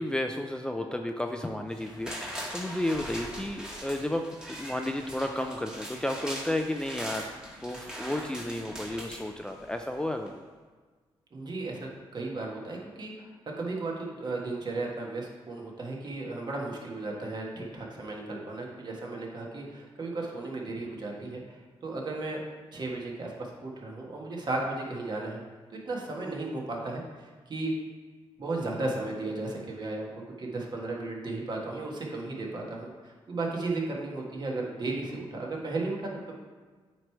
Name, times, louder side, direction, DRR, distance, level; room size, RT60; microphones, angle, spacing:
voice 1, 0.0-10.3, left 1 dB, 10° left, 4 dB, 0.4 m, -32 dB
serving cat food, 1.7-9.9 10.3-10.4, equal, 5° right, 1.4 m, -41 dB
voice 2, 11.3-13.3 13.6-22.4 22.7-25.4 25.7-27.7 28.4-36.3, right 2 dB, 45° right, -2 dB, 1.5 m, -35 dB
8.9 x 3.2 x 4.6 m, 1.4 s
cardioid pair, 95°, 10 cm